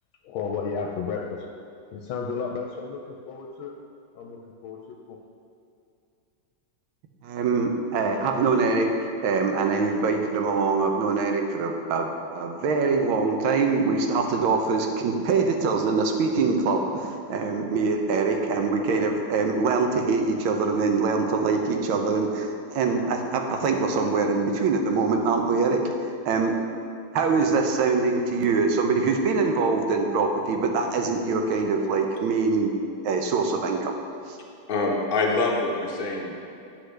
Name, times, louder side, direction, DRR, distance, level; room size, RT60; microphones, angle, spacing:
voice 1, 0.2-1.5 1.9-3.8 4.1-5.2, left 5 dB, 80° left, 2 dB, 1.4 m, -33 dB
voice 2, 7.2-8.9 9.2-26.6 27.1-32.7 33.0-33.9 34.3-34.4, right 4 dB, 75° right, 4 dB, 1.5 m, -24 dB
voice 3, 34.7-36.4, left 3 dB, 45° left, -2 dB, 0.6 m, -25 dB
9.8 x 6.5 x 3.3 m, 2.6 s
omnidirectional pair, 2.3 m